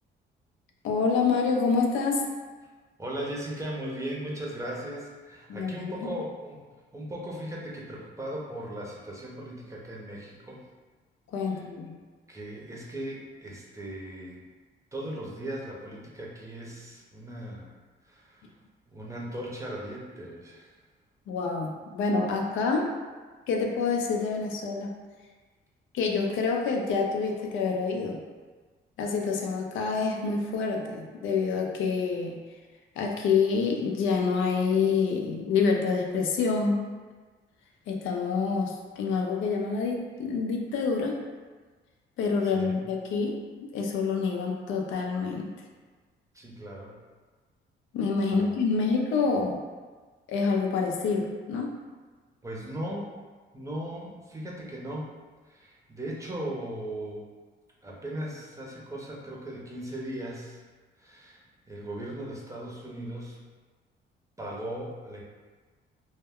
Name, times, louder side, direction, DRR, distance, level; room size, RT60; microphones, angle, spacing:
voice 1, 0.8-2.2 5.5-5.9 11.3-12.0 21.3-22.9 23.5-24.9 25.9-28.2 29.0-32.4 33.0-36.8 37.9-41.2 42.2-43.4 43.7-45.5 47.9-49.6 50.3-51.7, left 4 dB, 80° left, 1 dB, 0.4 m, -27 dB
voice 2, 3.0-6.6 6.9-10.6 11.5-11.6 12.3-14.4 14.9-17.7 18.0-18.5 18.9-20.7 42.5-42.8 46.3-47.0 48.4-48.5 52.4-53.1 53.5-55.1 55.5-57.3 57.8-60.6 61.0-63.4 64.4-65.2, right 1 dB, 15° right, -4 dB, 0.6 m, -38 dB
2.1 x 2.1 x 3.5 m, 1.4 s
cardioid pair, 90°, 20 cm